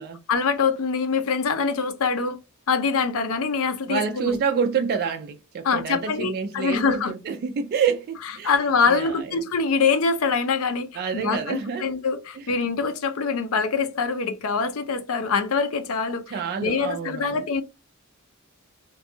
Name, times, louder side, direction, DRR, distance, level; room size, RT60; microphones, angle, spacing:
voice 1, 0.3-2.4 2.7-4.4 5.6-7.1 8.4-16.3 16.6-17.6, left 5 dB, 70° left, 0.5 m, -24 dB
voice 2, 3.9-8.5 8.9-9.3 10.9-11.9 12.3-12.5 16.3-17.4, right 6 dB, 45° right, 0.3 m, -27 dB
2.6 x 2.2 x 2.6 m
head